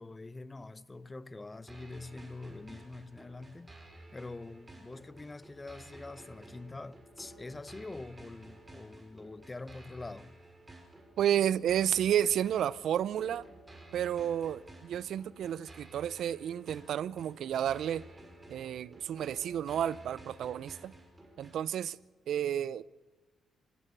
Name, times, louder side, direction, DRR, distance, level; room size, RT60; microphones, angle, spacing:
voice 1, 0.0-3.7 4.1-10.3, left 2 dB, 25° left, 0.9 m, -45 dB
sound 1, 1.7-21.7, right 1 dB, 20° right, 5.5 m, -53 dB
voice 2, 11.2-13.5 13.9-18.0 18.5-20.9 21.4-22.0 22.3-22.8, right 10 dB, 75° right, 0.6 m, -31 dB
25.5 x 16.5 x 6.7 m
cardioid pair, 70°, 0 cm